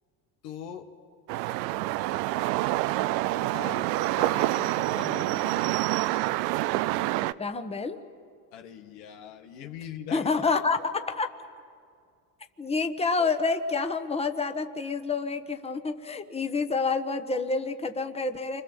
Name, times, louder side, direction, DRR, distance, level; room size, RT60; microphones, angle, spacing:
voice 1, 0.4-0.9 3.3-3.9 4.2-5.7 8.5-10.5, left 9 dB, 85° left, 4 dB, 2.1 m, -41 dB
sound 1, 1.3-7.3, right 17 dB, 85° right, 0.7 m, -27 dB
voice 2, 7.4-8.0 10.1-11.3 12.6-18.6, left 4 dB, 15° left, 7 dB, 1.4 m, -28 dB
28.5 x 26.0 x 7.3 m, 2.3 s
supercardioid pair, 95°, 47 cm